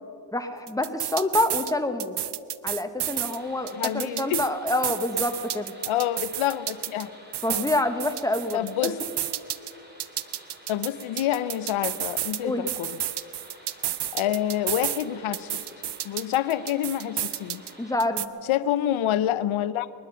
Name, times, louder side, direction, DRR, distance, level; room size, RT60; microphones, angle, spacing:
voice 1, 0.3-2.2 2.6-5.7 7.4-8.9 12.4-12.7 17.8-18.3, left 1 dB, 5° left, 7 dB, 1.3 m, -27 dB
sound 1, 0.7-1.7 2.0-3.4 3.7-7.0 7.3-9.7 10.0-12.4 12.7-15.0 15.3-17.7 18.0-18.3, right 12 dB, 60° right, 0.6 m, -31 dB
sound 2, 3.0-18.0, right 1 dB, 20° right, 4.0 m, -50 dB
voice 2, 3.8-4.5 5.9-7.1 7.5-7.7 8.5-9.0 10.7-13.0 14.1-15.7 16.0-17.6 18.5-19.9, left 12 dB, 90° left, 16 dB, 0.7 m, -27 dB
21.0 x 12.0 x 5.6 m, 2.6 s
cardioid pair, 60°, 48 cm